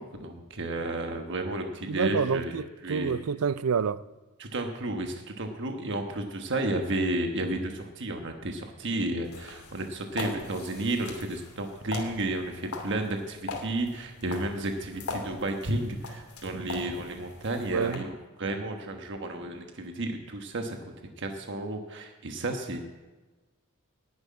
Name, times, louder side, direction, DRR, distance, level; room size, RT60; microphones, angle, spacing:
voice 1, 0.0-3.2 4.4-20.8 21.2-22.8, right 2 dB, 55° right, 1.2 m, -32 dB
voice 2, 1.9-4.0 17.7-18.0, right 6 dB, 75° right, 0.5 m, -28 dB
sound 1, 9.2-17.9, left 3 dB, 85° left, 2.5 m, -41 dB
11.0 x 8.0 x 9.6 m
head